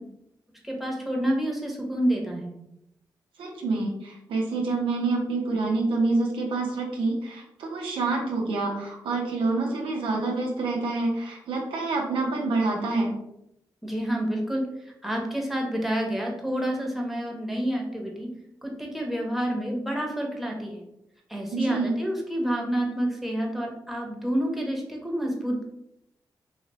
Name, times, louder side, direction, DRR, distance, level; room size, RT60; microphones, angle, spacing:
voice 1, 0.6-2.5 13.8-14.7 15.0-18.3 18.6-20.8 21.3-25.6, equal, ahead, -1 dB, 1.0 m, -28 dB
voice 2, 3.4-13.1 21.5-22.0, right 3 dB, 85° right, 0 dB, 0.7 m, -27 dB
3.1 x 2.8 x 3.0 m, 0.81 s
supercardioid pair, 45°, 9 cm